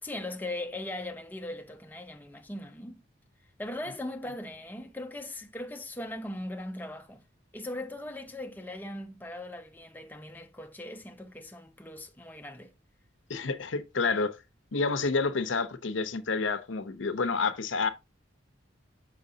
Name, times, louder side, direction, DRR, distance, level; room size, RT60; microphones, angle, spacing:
voice 1, 0.0-3.0 3.6-7.2 7.5-12.7, left 1 dB, 10° left, 0.6 m, -39 dB
voice 2, 13.3-14.4 14.7-17.9, left 4 dB, 75° left, 0.7 m, -29 dB
6.4 x 5.7 x 2.7 m
head